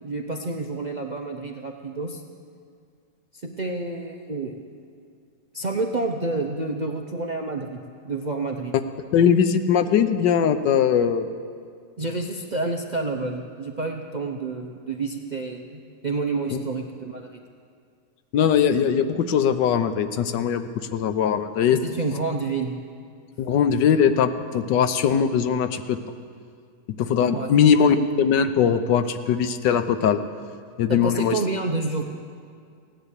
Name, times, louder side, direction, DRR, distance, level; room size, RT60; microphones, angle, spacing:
voice 1, 0.0-2.2 3.3-4.6 5.5-8.7 12.0-17.4 21.8-22.7 27.3-27.5 30.9-32.0, right 3 dB, 50° right, 2 dB, 0.5 m, -29 dB
voice 2, 9.1-11.3 18.3-20.6 20.9-21.8 23.4-26.0 27.0-30.2 30.8-31.4, left 7 dB, 90° left, 10 dB, 1.4 m, -20 dB
16.5 x 10.0 x 8.3 m, 2.2 s
omnidirectional pair, 1.8 m